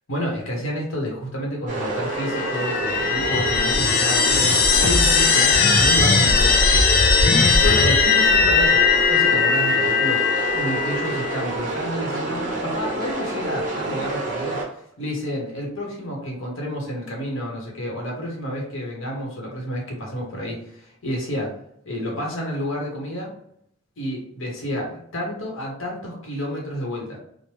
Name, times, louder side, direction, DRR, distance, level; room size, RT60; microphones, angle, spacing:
voice 1, 0.1-6.9 7.2-10.2 10.5-21.6 21.8-23.3 24.0-27.2, equal, 85° left, -1 dB, 0.9 m, -30 dB
sound 1, 1.7-14.7, right 2 dB, 40° right, 0.8 m, -28 dB
sound 2, 2.2-11.4, left 5 dB, 50° left, 0.4 m, -19 dB
3.0 x 2.1 x 3.1 m, 0.69 s
head